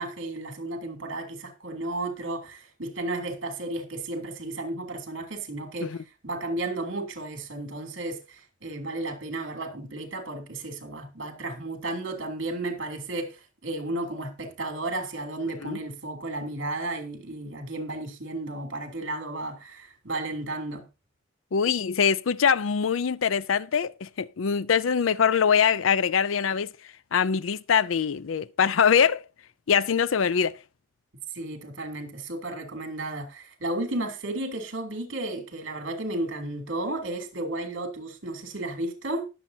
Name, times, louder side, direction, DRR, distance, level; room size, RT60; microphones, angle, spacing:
voice 1, 0.0-6.0 6.2-20.8 31.3-39.3, right 2 dB, 65° right, 3.0 m, -33 dB
voice 2, 21.5-26.7 27.1-29.2 29.7-30.6, left 7 dB, 80° left, 0.5 m, -23 dB
20.0 x 7.4 x 2.8 m
head